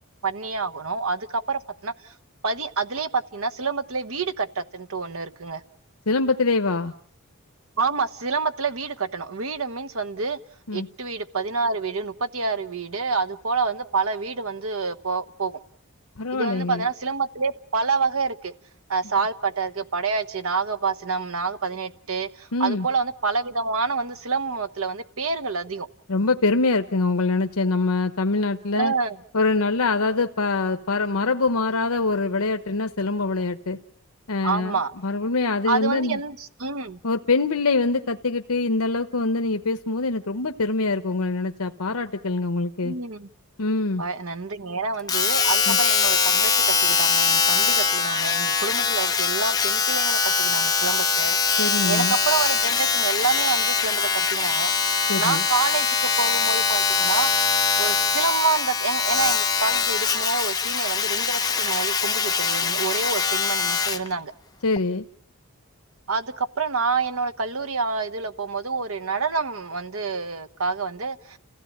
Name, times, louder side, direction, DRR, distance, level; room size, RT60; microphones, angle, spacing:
voice 1, 0.2-2.1 2.4-5.6 7.8-10.4 10.7-15.6 16.3-18.5 18.9-25.9 28.7-29.2 34.4-34.9 35.6-37.0 42.8-43.3 44.0-51.4 51.9-54.9 55.2-57.3 57.8-64.3 66.1-71.4, right 4 dB, 70° right, 1.1 m, -27 dB
voice 2, 6.1-6.9 10.7-10.9 16.2-16.8 22.5-22.9 26.1-28.9 29.3-33.8 34.3-36.2 37.0-42.9 43.6-44.0 45.7-45.8 51.6-52.1 55.1-55.4 64.6-65.0, left 3 dB, 80° left, 1.0 m, -24 dB
Domestic sounds home sounds, 45.1-64.1 64.8-64.9, left 5 dB, 15° left, 1.0 m, -22 dB
30.0 x 16.0 x 8.7 m
head